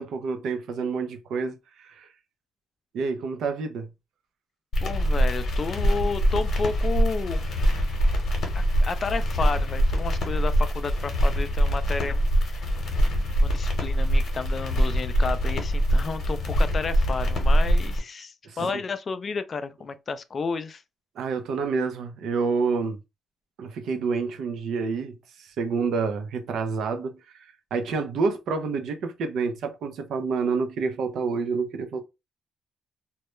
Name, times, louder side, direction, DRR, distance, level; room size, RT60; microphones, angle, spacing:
voice 1, 0.0-2.1 2.9-3.9 18.5-18.8 21.2-23.0 23.6-32.0, right 4 dB, 75° right, 0.5 m, -28 dB
sound 1, 4.7-18.0, equal, 60° left, 0.8 m, -23 dB
voice 2, 4.8-7.4 8.5-12.7 13.4-20.8, left 4 dB, 40° left, 0.3 m, -32 dB
2.2 x 2.0 x 3.0 m
cardioid pair, 90°, 0 cm